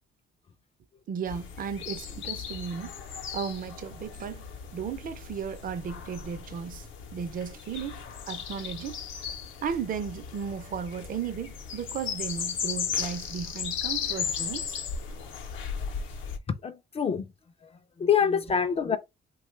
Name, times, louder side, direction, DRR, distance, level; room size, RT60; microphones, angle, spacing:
voice 1, 1.1-2.9 3.3-9.0 9.3-9.4 9.6-14.8, right 7 dB, 45° right, 0.5 m, -35 dB
sound 1, 1.3-16.4, left 7 dB, 75° left, 0.7 m, -36 dB
voice 2, 16.5-17.3 17.6-17.7 18.0-19.0, left 7 dB, 30° left, 0.3 m, -26 dB
2.8 x 2.2 x 3.1 m
cardioid pair, 90°, 20 cm